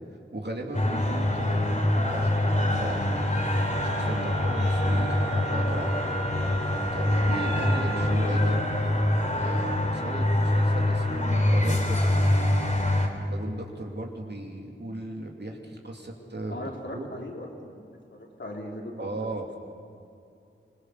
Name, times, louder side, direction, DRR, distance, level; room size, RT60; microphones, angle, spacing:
voice 1, 0.3-3.3 3.7-6.1 6.9-8.6 9.4-12.4 13.3-17.1 19.0-19.6, right 1 dB, 55° right, 1 dB, 2.9 m, -37 dB
sound 1, 0.7-13.1, left 1 dB, 35° left, 3.3 m, -25 dB
Wind instrument woodwind instrument, 3.3-8.2, right 4 dB, ahead, 3.2 m, -38 dB
voice 2, 16.5-17.8 18.1-19.1, left 1 dB, 60° left, -1 dB, 3.9 m, -38 dB
25.0 x 18.5 x 6.6 m, 2.6 s
wide cardioid pair, 45°, 21 cm